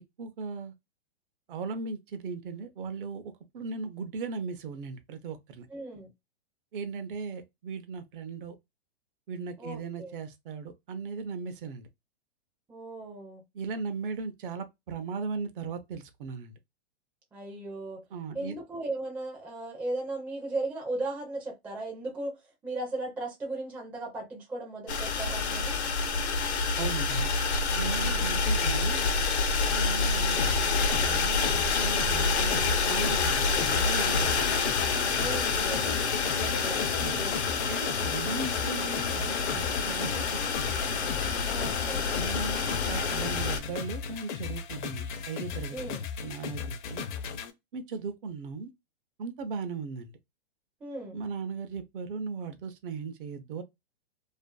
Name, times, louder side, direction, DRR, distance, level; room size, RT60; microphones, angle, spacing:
voice 1, 0.2-0.7 1.5-5.7 6.7-8.6 9.3-11.9 13.5-16.6 18.1-18.6 26.8-27.3 27.7-29.1 29.7-30.5 31.0-34.6 37.0-37.2 37.7-40.8 42.1-47.1 47.7-48.7 49.2-50.1 51.1-53.6, right 5 dB, 55° right, 0.6 m, -37 dB
voice 2, 5.7-6.1 9.6-10.1 12.7-13.4 17.3-18.0 18.3-22.4 22.6-25.8 28.0-28.3 35.1-37.4 41.4-42.0 45.7-46.0 50.8-51.2, right 2 dB, 5° right, 0.4 m, -37 dB
sound 1, 24.9-43.6, left 4 dB, 85° left, 0.9 m, -28 dB
sound 2, 30.4-47.5, left 6 dB, 50° left, 0.6 m, -36 dB
2.5 x 2.4 x 2.2 m
hypercardioid pair, 140°, 32 cm